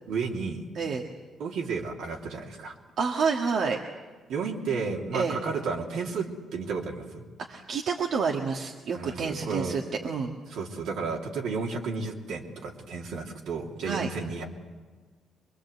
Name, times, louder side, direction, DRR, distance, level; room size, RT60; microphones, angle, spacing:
voice 1, 0.1-0.6 1.4-2.7 4.3-7.2 8.9-9.8 10.5-14.5, right 4 dB, 80° right, 0 dB, 3.1 m, -32 dB
voice 2, 3.0-3.8 5.1-5.4 7.5-10.3 13.8-14.1, right 5 dB, 65° right, 1 dB, 1.7 m, -28 dB
24.0 x 22.0 x 8.1 m, 1.4 s
cardioid pair, 90°, 0 cm